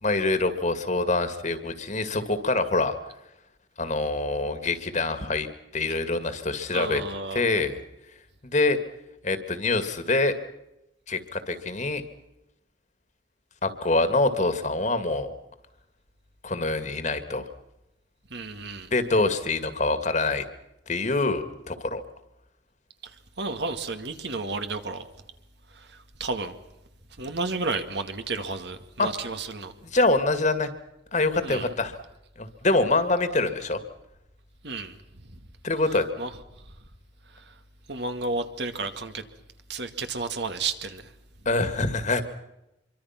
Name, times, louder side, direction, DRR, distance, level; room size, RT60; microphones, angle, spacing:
voice 1, 0.0-3.0 3.8-5.5 5.7-7.0 7.3-7.8 8.5-8.8 9.2-10.3 11.1-12.0 13.6-15.3 16.4-17.5 18.9-20.4 20.9-22.0 29.0-29.1 29.8-30.7 31.1-32.0 32.4-33.8 35.6-36.1 41.5-42.2, left 2 dB, 40° left, 2.1 m, -25 dB
voice 2, 6.7-7.5 18.3-18.9 23.0-25.1 25.7-26.6 27.2-29.7 31.4-31.7 34.6-35.0 35.3-35.4 36.2-36.3 37.3-37.5 37.9-39.2 39.7-41.1, right 3 dB, 60° right, 2.1 m, -32 dB
25.5 x 24.0 x 5.9 m
head